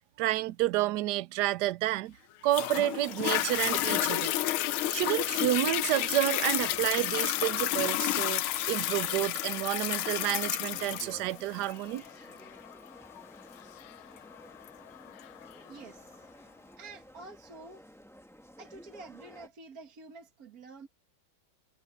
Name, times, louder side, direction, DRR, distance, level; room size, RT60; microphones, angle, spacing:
voice 1, 0.2-2.2 2.4-4.3 4.9-12.0, right 15 dB, 75° right, 1.0 m, -30 dB
Toilet flush, 2.5-15.5 16.1-16.2, left 14 dB, 90° left, 1.5 m, -31 dB
sound 1, 3.1-19.5, equal, ahead, 1.3 m, -53 dB
voice 2, 15.6-16.3 16.8-17.8 18.6-20.9, right 3 dB, 45° right, 2.1 m, -48 dB
omnidirectional pair, 2.2 m